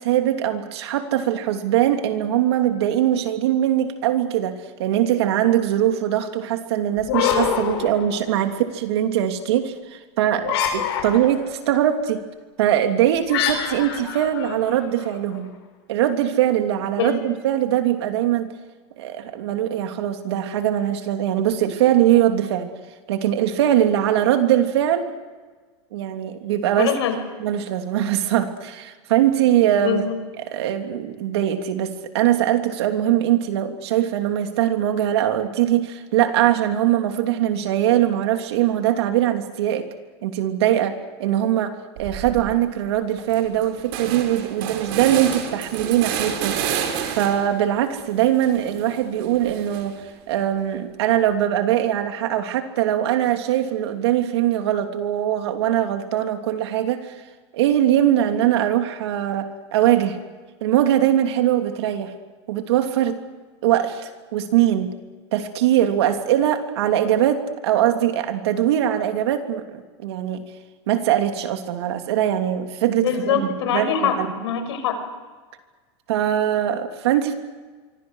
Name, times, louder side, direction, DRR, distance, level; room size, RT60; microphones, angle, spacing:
voice 1, 0.0-12.2 12.6-15.5 15.9-18.5 19.0-22.7 23.1-25.1 25.9-26.9 27.4-30.0 30.4-39.9 40.2-49.9 50.3-57.1 57.5-60.2 60.6-62.1 62.5-63.2 63.6-64.9 65.3-70.4 70.9-74.3 76.1-77.3, right 11 dB, 75° right, 5 dB, 3.0 m, -21 dB
sound 1, 7.0-8.6 10.4-11.5 13.3-15.2, left 8 dB, 70° left, 7.2 m, -25 dB
voice 2, 26.8-27.2 29.8-30.2 72.9-75.0, left 8 dB, 90° left, 7 dB, 5.8 m, -23 dB
sound 2, 42.0-42.4 42.8-42.9 43.2-47.6 48.0-50.1, right 8 dB, 55° right, 4.3 m, -30 dB
27.0 x 24.5 x 6.5 m, 1.4 s
supercardioid pair, 165°, 14 cm